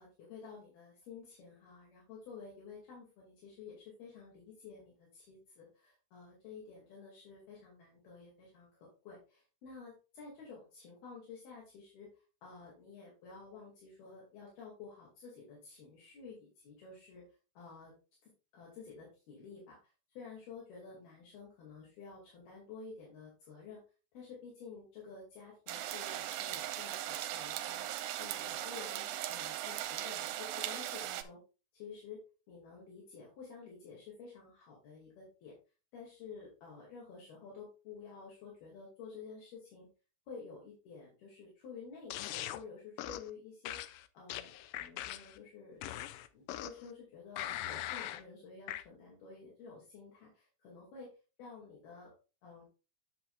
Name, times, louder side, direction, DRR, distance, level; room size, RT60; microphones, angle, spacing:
voice 1, 0.0-12.1 12.4-17.2 17.6-17.9 18.5-19.8 20.2-23.8 24.1-31.4 31.7-35.5 35.9-39.9 40.3-43.8 44.1-45.8 46.3-51.1 51.4-52.1 52.4-52.6, left 5 dB, 70° left, -4 dB, 4.2 m, -51 dB
sound 1, 25.7-31.2, right 13 dB, 85° right, 2.5 m, -39 dB
sound 2, 42.1-42.6 43.0-43.3 43.6-45.4 45.8-46.9 47.4-48.2 48.7-48.8, left 13 dB, 90° left, 1.9 m, -41 dB
8.6 x 7.8 x 2.4 m, 0.32 s
omnidirectional pair, 4.5 m